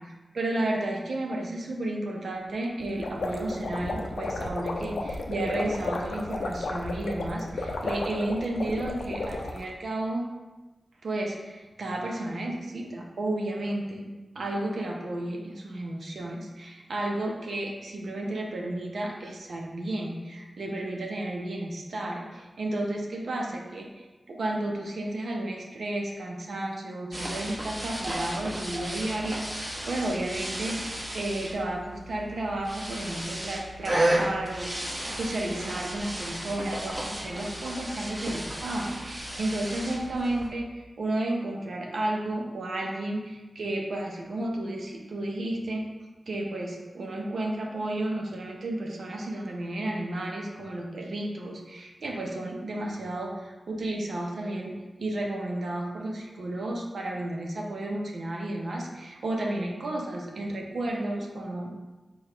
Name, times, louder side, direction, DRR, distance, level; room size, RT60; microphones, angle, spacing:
voice 1, 0.0-10.3 11.0-14.1 14.3-34.7 35.1-45.9 46.3-61.7, right 1 dB, 80° right, 0 dB, 0.7 m, -32 dB
sound 1, 2.8-9.6, left 2 dB, 85° left, 0.4 m, -33 dB
sound 2, 27.1-40.5, right 1 dB, 30° right, 1.1 m, -33 dB
4.8 x 2.4 x 4.4 m, 1.2 s
cardioid pair, 40°, 0 cm